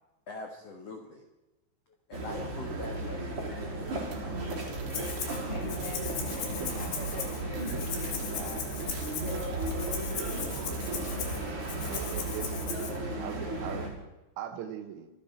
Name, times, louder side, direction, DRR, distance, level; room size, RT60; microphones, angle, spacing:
voice 1, 0.3-1.2 2.1-3.3, left 3 dB, 80° left, 2 dB, 1.4 m, -42 dB
sound 1, 2.1-13.9, right 2 dB, 30° right, 4.7 m, -35 dB
sound 2, 3.8-12.4, right 4 dB, 50° right, 3.8 m, -46 dB
Rattle (instrument), 4.9-5.4 5.7-12.9, left 7 dB, 65° left, 4.2 m, -38 dB
voice 2, 5.5-9.7, left 3 dB, 35° left, 1 dB, 3.1 m, -45 dB
voice 3, 10.5-11.6 11.9-13.9 14.4-15.1, right 9 dB, 75° right, 6 dB, 4.0 m, -42 dB
26.0 x 10.0 x 4.5 m, 1.0 s
omnidirectional pair, 5.8 m